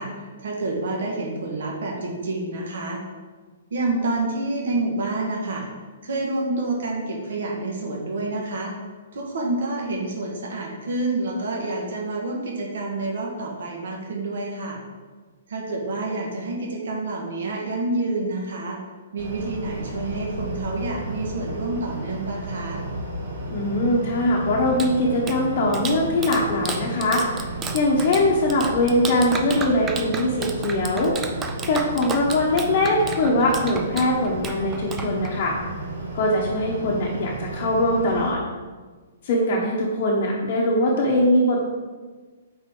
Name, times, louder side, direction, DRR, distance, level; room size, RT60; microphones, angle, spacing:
voice 1, 0.0-3.0 3.7-5.7 6.0-8.7 9.1-14.8 15.5-18.8 19.1-22.8, right 2 dB, 60° right, -1 dB, 1.6 m, -28 dB
sound 1, 19.2-38.3, right 2 dB, 80° right, 1.8 m, -33 dB
voice 2, 23.5-27.2 27.7-31.2 31.7-35.6 36.1-38.4 39.2-41.6, left 1 dB, 30° left, -4 dB, 0.9 m, -21 dB
Clapping, 24.4-35.6, right 4 dB, 10° right, 0.3 m, -34 dB
8.6 x 4.2 x 3.8 m, 1.4 s
hypercardioid pair, 175°, 0 cm